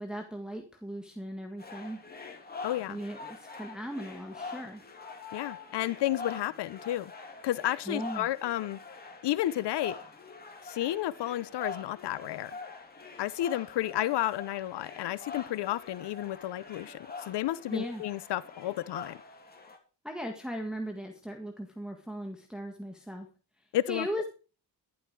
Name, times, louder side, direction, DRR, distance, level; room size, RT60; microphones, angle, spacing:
voice 1, 0.0-2.0 2.9-4.8 7.9-8.3 17.7-18.0 20.0-23.3 23.9-24.2, equal, ahead, 1.7 m, -38 dB
sound 1, 1.6-19.8, left 4 dB, 20° left, 2.9 m, -45 dB
voice 2, 2.6-3.0 5.3-7.1 7.4-8.8 9.2-10.0 10.6-12.5 13.2-17.0 17.3-19.2 23.7-24.1, left 14 dB, 75° left, 0.7 m, -31 dB
12.0 x 11.5 x 4.6 m
cardioid pair, 115°, 41 cm